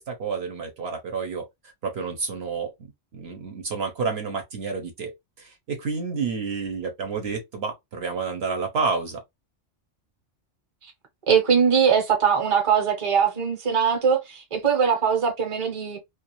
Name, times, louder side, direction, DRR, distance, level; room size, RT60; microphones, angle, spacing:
voice 1, 0.0-1.5 1.8-2.7 3.1-5.1 5.4-9.2, right 5 dB, 65° right, 0.9 m, -29 dB
voice 2, 11.3-16.0, right 7 dB, 30° right, 0.7 m, -21 dB
2.3 x 2.3 x 2.9 m
omnidirectional pair, 1.2 m